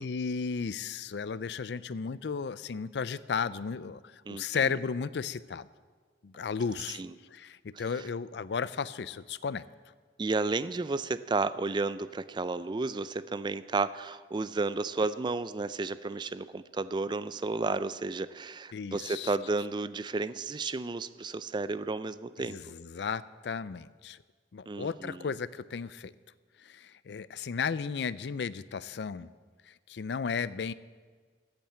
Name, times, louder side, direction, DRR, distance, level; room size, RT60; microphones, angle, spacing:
voice 1, 0.0-5.7 6.2-7.0 7.3-9.6 18.7-19.3 22.5-24.2 24.5-26.1 26.6-29.3 29.9-30.7, left 5 dB, 70° left, 17 dB, 0.4 m, -34 dB
voice 2, 4.3-4.7 7.0-7.1 7.7-7.8 10.2-22.6 24.7-25.3, right 3 dB, 25° right, 15 dB, 0.4 m, -32 dB
14.5 x 8.8 x 7.4 m, 1.5 s
head